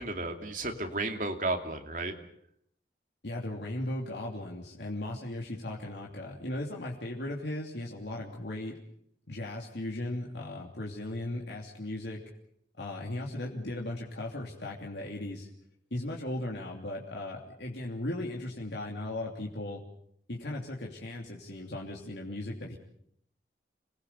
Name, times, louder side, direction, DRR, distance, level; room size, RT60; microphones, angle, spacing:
voice 1, 0.0-2.2, right 2 dB, 45° right, 5 dB, 2.7 m, -33 dB
voice 2, 3.2-8.8 9.3-12.2 12.8-15.5 15.9-19.8 20.3-22.8, left 1 dB, 80° left, -2 dB, 3.0 m, -37 dB
27.5 x 20.0 x 7.0 m, 0.71 s
head